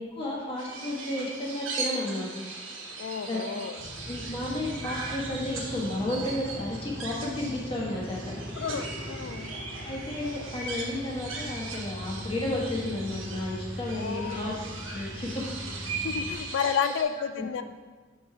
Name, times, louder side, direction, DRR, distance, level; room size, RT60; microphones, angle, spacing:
voice 1, 0.0-2.3 3.3-3.4 4.1-8.3 9.4-9.5 9.8-14.5 14.9-15.3 16.2-16.4 17.4-17.5, left 1 dB, 30° left, -4 dB, 1.4 m, -32 dB
sound 1, 0.6-17.0, right 3 dB, 90° right, 1.1 m, -39 dB
voice 2, 3.0-3.8 8.6-9.5 13.9-14.6 16.0-17.6, left 7 dB, 65° left, 10 dB, 0.3 m, -31 dB
sound 2, 3.8-16.3, equal, 85° left, 1.9 m, -40 dB
4.9 x 4.4 x 5.8 m, 1.4 s
head